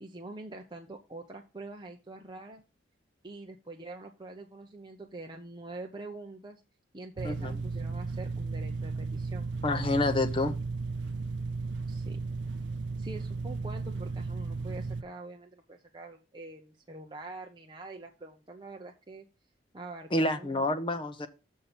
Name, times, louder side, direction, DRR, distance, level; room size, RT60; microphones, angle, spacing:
voice 1, 0.0-2.6 3.2-6.6 6.9-9.5 11.9-12.2 13.0-19.3 19.7-20.7, right 2 dB, 25° right, 2 dB, 0.8 m, -45 dB
sound 1, 7.2-15.0, right 4 dB, 65° right, 0.5 m, -35 dB
voice 2, 9.6-10.6 20.1-21.3, left 2 dB, 25° left, 7 dB, 0.9 m, -28 dB
6.8 x 5.5 x 6.0 m, 0.30 s
head